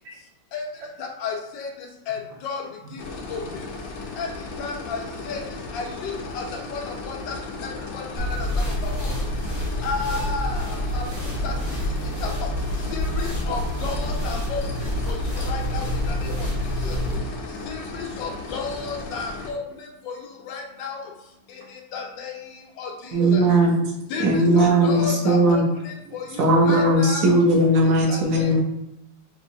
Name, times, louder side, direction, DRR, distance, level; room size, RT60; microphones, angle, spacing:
voice 1, 1.0-2.6 2.9-3.0 3.3-3.7 4.2-4.3 4.6-5.4 5.7-7.4 7.6-9.3 9.8-11.8 12.2-12.5 12.9-16.5 16.8-17.0 17.7-20.2 20.4-21.1 21.5-23.5 24.1-27.4 27.8-28.6, left 5 dB, 85° left, 2 dB, 1.4 m, -33 dB
sound 1, 3.0-19.5, left 3 dB, 60° left, 0.9 m, -36 dB
sound 2, 8.2-17.2, equal, 40° right, 0.5 m, -27 dB
voice 2, 13.0-13.5 16.2-17.7 21.6-21.7 28.5-28.6, equal, 85° right, -1 dB, 1.6 m, -44 dB
voice 3, 23.1-23.9 24.2-25.6 26.4-28.6, right 1 dB, 60° right, -1 dB, 1.0 m, -18 dB
5.5 x 2.7 x 2.7 m, 0.83 s
omnidirectional pair, 2.0 m